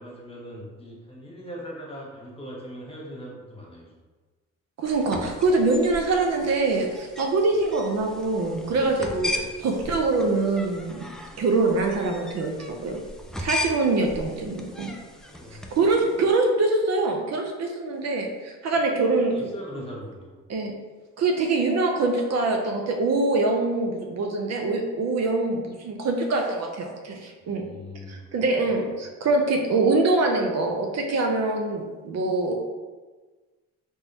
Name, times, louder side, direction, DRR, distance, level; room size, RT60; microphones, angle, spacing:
voice 1, 0.0-4.0 15.1-15.6 15.9-16.0 18.7-20.4 27.4-28.2, equal, 20° left, -3 dB, 1.1 m, -40 dB
sound 1, 4.8-16.2, left 1 dB, ahead, 0.3 m, -37 dB
voice 2, 4.8-11.1 11.4-13.0 13.4-14.9 15.7-19.5 20.5-20.7 21.2-27.6 28.1-32.5, right 3 dB, 60° right, 2 dB, 0.6 m, -24 dB
3.5 x 3.0 x 2.8 m, 1.3 s
cardioid pair, 90°, 30 cm